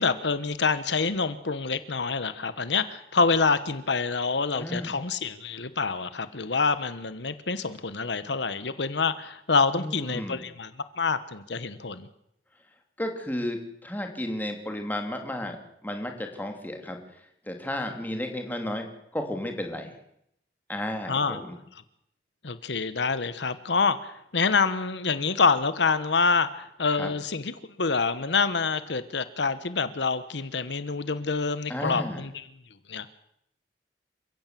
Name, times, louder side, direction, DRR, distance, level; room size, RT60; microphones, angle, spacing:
voice 1, 0.0-10.7 11.0-12.1 21.1-21.4 22.4-27.5 27.8-32.3 32.9-33.1, left 4 dB, 75° left, 13 dB, 1.2 m, -26 dB
voice 2, 4.5-5.0 9.7-10.4 13.0-18.9 19.1-19.9 20.7-21.6 26.9-27.1 31.7-32.2, left 1 dB, 10° left, 4 dB, 3.0 m, -33 dB
28.5 x 16.5 x 7.6 m, 0.77 s
head